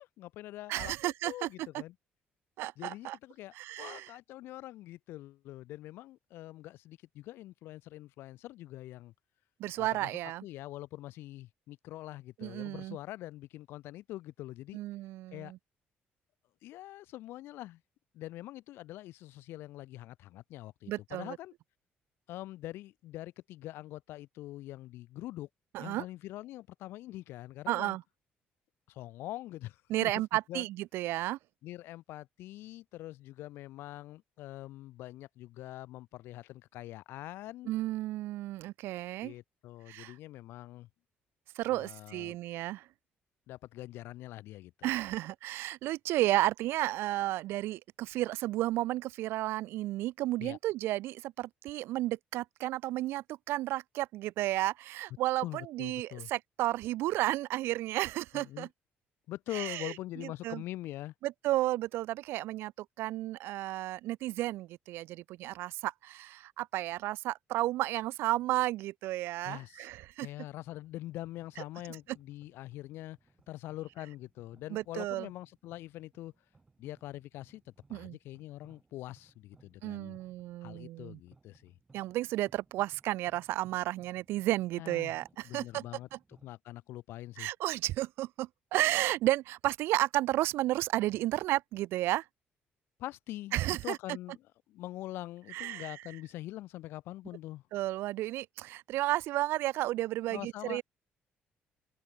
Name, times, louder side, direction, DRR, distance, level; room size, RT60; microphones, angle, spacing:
voice 1, 0.0-1.9 2.8-9.1 9.8-14.8 15.3-15.5 16.6-17.8 18.1-21.5 22.3-25.5 25.8-28.0 28.9-30.1 30.5-30.7 31.6-37.7 39.2-40.9 41.7-42.4 43.5-44.9 50.4-50.6 55.4-56.3 58.3-58.7 59.3-61.1 69.4-69.9 70.2-73.2 73.5-76.3 76.8-80.2 80.6-81.7 84.8-85.2 85.4-86.1 86.4-87.5 93.0-93.5 93.8-97.6 100.3-100.8, left 16 dB, 80° left, 0.8 m, -44 dB
voice 2, 0.7-1.5 2.6-3.2 3.5-4.1 9.6-10.4 12.4-13.0 14.7-15.6 20.9-21.4 25.7-26.0 27.7-28.0 29.9-31.4 37.7-39.3 39.9-40.1 41.6-42.8 44.8-58.7 59.5-59.9 60.4-60.6 61.2-70.3 74.7-75.3 77.9-78.2 79.8-81.2 81.9-85.8 87.4-92.2 93.5-94.0 95.5-96.0 97.7-100.8, right 16 dB, 85° right, 0.6 m, -32 dB
sound 1, 70.4-86.5, right 3 dB, 15° right, 4.4 m, -65 dB
cardioid pair, 175°, 4 cm